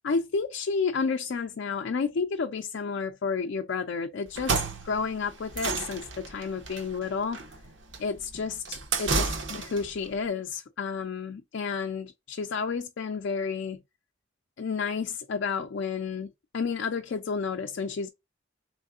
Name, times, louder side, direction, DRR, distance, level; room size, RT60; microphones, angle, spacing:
voice 1, 0.0-7.4 8.0-13.8 14.6-18.1, left 5 dB, 65° left, 0.4 m, -31 dB
sound 1, 4.3-9.9, right 4 dB, 80° right, 0.9 m, -31 dB
3.5 x 3.1 x 2.4 m
head